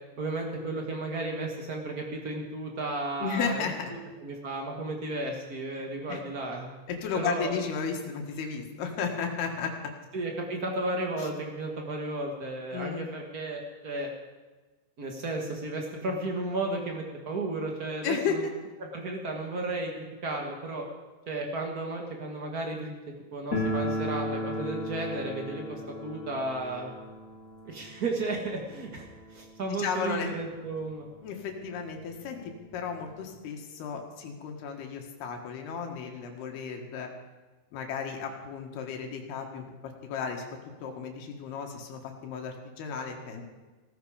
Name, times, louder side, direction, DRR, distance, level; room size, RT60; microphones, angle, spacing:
voice 1, 0.2-3.6 4.2-6.7 7.1-7.6 10.1-14.1 15.0-18.4 18.9-20.8 21.3-22.9 23.3-26.9 27.6-31.1, right 2 dB, 90° right, 1 dB, 0.8 m, -33 dB
voice 2, 3.2-3.9 5.8-6.2 6.9-9.9 11.2-11.3 12.7-13.1 18.0-18.5 29.8-30.3 31.2-37.1 37.7-40.5 40.8-43.5, left 6 dB, 80° left, 2 dB, 3.7 m, -34 dB
sound 1, 23.5-30.2 30.5-30.6 30.8-30.9 31.7-31.8 32.1-33.3, left 1 dB, 30° left, 1.7 m, -36 dB
16.5 x 14.0 x 5.0 m, 1.3 s
omnidirectional pair, 4.6 m